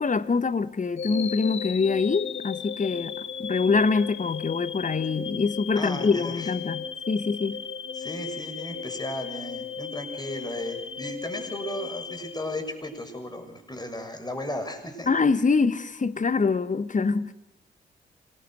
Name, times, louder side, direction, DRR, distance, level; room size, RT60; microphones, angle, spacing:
voice 1, 0.0-7.6 15.1-17.3, left 4 dB, 40° left, 1.4 m, -25 dB
sound 1, 1.0-13.1, left 7 dB, 65° left, 1.5 m, -36 dB
voice 2, 5.8-6.5 7.9-15.1, left 1 dB, 20° left, 7.0 m, -35 dB
26.5 x 19.5 x 6.5 m
hypercardioid pair, 40°, 21 cm